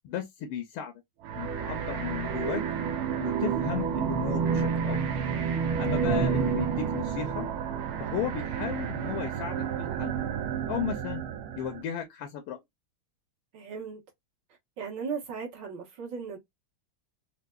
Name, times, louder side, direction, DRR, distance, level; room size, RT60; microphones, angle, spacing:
voice 1, 0.0-0.9 1.3-2.6 3.2-5.0 5.8-7.5 8.0-10.2 10.7-11.2 11.6-12.6, left 8 dB, 80° left, 1.5 m, -35 dB
sound 1, 1.2-11.8, right 7 dB, 80° right, 1.4 m, -30 dB
voice 2, 13.5-14.0 14.8-16.4, right 5 dB, 60° right, 1.9 m, -37 dB
4.6 x 2.1 x 2.2 m
omnidirectional pair, 2.3 m